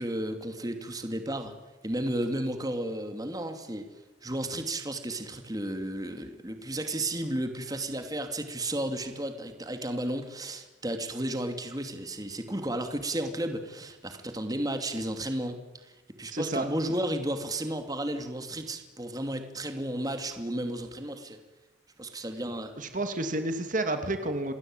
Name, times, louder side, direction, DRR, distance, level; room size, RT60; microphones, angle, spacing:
voice 1, 0.0-1.5 1.8-3.9 4.2-15.9 16.2-21.4 22.0-22.7, right 1 dB, 20° right, 6 dB, 2.5 m, -33 dB
voice 2, 16.3-16.7 22.8-24.5, right 2 dB, 45° right, 7 dB, 2.3 m, -30 dB
28.0 x 20.0 x 8.9 m, 1.1 s
head